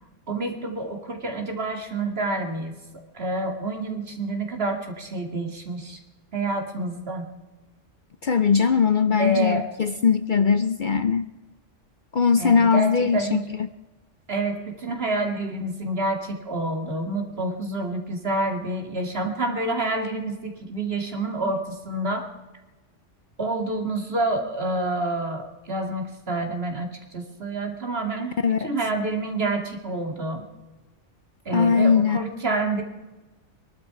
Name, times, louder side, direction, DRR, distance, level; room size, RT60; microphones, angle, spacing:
voice 1, 0.3-2.8 3.1-6.0 6.3-7.3 9.2-9.7 12.4-13.5 14.3-22.3 23.4-30.4 31.5-32.8, right 2 dB, 55° right, 4 dB, 2.5 m, -28 dB
voice 2, 8.2-11.3 12.1-13.4 28.4-28.7 31.5-32.2, left 6 dB, 50° left, 11 dB, 0.7 m, -20 dB
24.0 x 12.0 x 4.8 m, 1.2 s
omnidirectional pair, 1.2 m